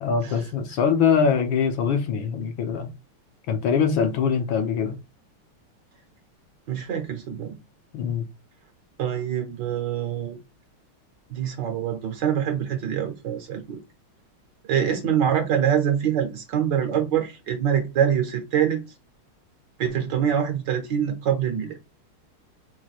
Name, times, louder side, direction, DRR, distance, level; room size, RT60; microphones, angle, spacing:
voice 1, 0.0-2.9 3.5-5.0 7.9-8.3, left 6 dB, 70° left, 1.6 m, -23 dB
voice 2, 6.7-7.6 9.0-10.4 11.3-13.8 14.7-18.8 19.8-21.8, right 9 dB, 65° right, 1.3 m, -25 dB
4.7 x 2.1 x 4.0 m
omnidirectional pair, 2.3 m